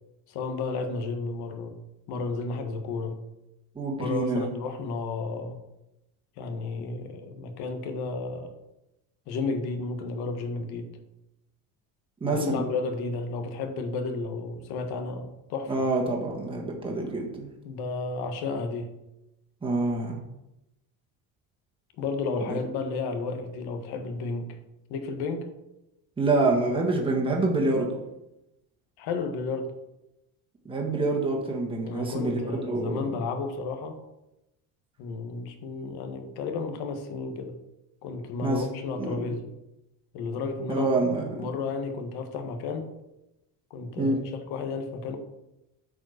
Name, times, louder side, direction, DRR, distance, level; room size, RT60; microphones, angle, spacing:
voice 1, 0.3-1.8 2.1-3.2 4.0-5.6 6.4-8.5 9.3-11.0 12.2-15.7 17.6-18.9 22.0-24.6 24.9-25.5 29.0-29.7 31.8-34.0 35.0-37.6 38.0-39.4 40.1-40.9 41.4-42.9 43.7-45.2, left 3 dB, 70° left, 6 dB, 1.5 m, -32 dB
voice 2, 3.7-4.5 12.2-12.6 15.7-17.5 19.6-20.2 22.5-22.6 26.2-28.0 30.6-33.1 38.4-38.6 39.0-39.2 40.7-41.4 44.0-44.2, right 2 dB, 15° right, 0 dB, 1.5 m, -26 dB
8.8 x 5.1 x 6.4 m, 0.92 s
cardioid pair, 170°, 40 cm